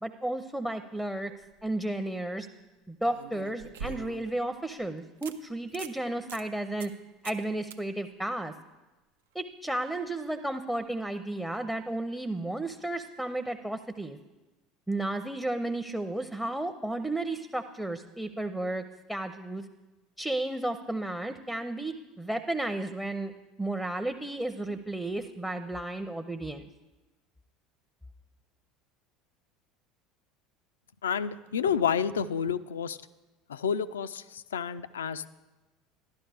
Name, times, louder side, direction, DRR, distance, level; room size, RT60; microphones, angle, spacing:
voice 1, 0.0-1.3 1.6-2.5 2.9-6.9 7.2-8.5 9.3-14.2 14.9-18.8 19.1-19.7 20.2-23.3 23.6-26.7, right 1 dB, 5° right, 10 dB, 0.6 m, -33 dB
sound 1, 1.3-1.7 3.1-4.4 4.8-4.9 5.2-5.4 5.7-6.0 6.3-6.4 6.8-7.0 7.2-7.4 7.7-7.8 10.9-11.0, right 6 dB, 75° right, 0.5 m, -42 dB
voice 2, 31.0-33.0 33.5-35.3, left 7 dB, 80° left, 14 dB, 0.3 m, -30 dB
12.0 x 11.5 x 3.4 m, 1.1 s
figure-of-eight pair, 70°, 0 cm